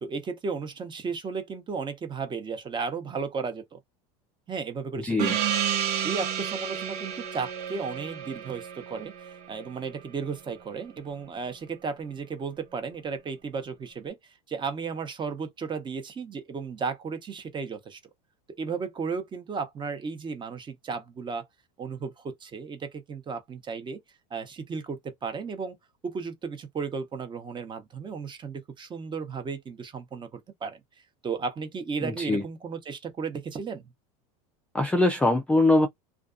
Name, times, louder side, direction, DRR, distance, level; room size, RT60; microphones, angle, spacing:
voice 1, 0.0-3.8 4.5-5.5 6.0-18.0 18.6-21.4 21.8-24.0 24.3-25.8 26.0-30.8 31.2-33.9, right 5 dB, 25° right, 0.8 m, -34 dB
voice 2, 5.0-5.3 32.0-32.4 34.7-35.9, left 2 dB, 5° left, 0.3 m, -22 dB
Gong, 5.2-10.3, right 9 dB, 90° right, 0.8 m, -31 dB
2.4 x 2.3 x 2.5 m
supercardioid pair, 115°, 19 cm